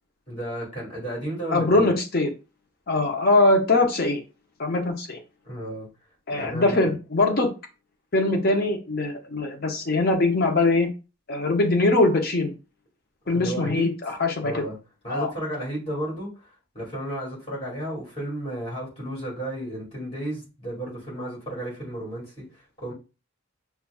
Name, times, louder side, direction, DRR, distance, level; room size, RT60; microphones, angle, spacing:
voice 1, 0.3-1.9 5.4-5.9 6.3-6.9 13.2-13.9 14.4-14.8 15.0-22.9, right 1 dB, 25° left, -5 dB, 2.1 m, -33 dB
voice 2, 1.5-2.3 2.9-4.2 4.6-5.2 6.3-7.5 8.1-10.9 11.3-12.5 13.3-14.6 15.1-15.3, left 2 dB, 45° left, 3 dB, 0.7 m, -22 dB
5.6 x 2.3 x 2.3 m, 0.31 s
head